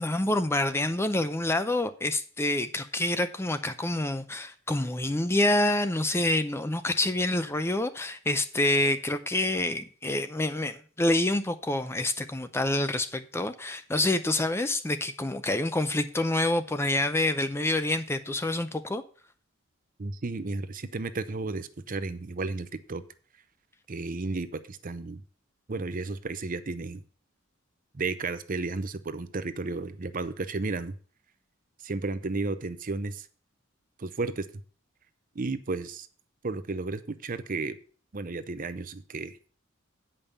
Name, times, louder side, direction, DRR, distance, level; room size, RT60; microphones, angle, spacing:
voice 1, 0.0-19.0, left 1 dB, 10° left, 0.5 m, -27 dB
voice 2, 20.0-23.0 23.9-25.2 25.7-27.0 27.9-30.9 31.8-33.3 34.0-34.5 35.3-36.1 36.4-37.8 38.1-39.4, right 3 dB, 40° right, 0.7 m, -33 dB
8.6 x 5.4 x 6.7 m
head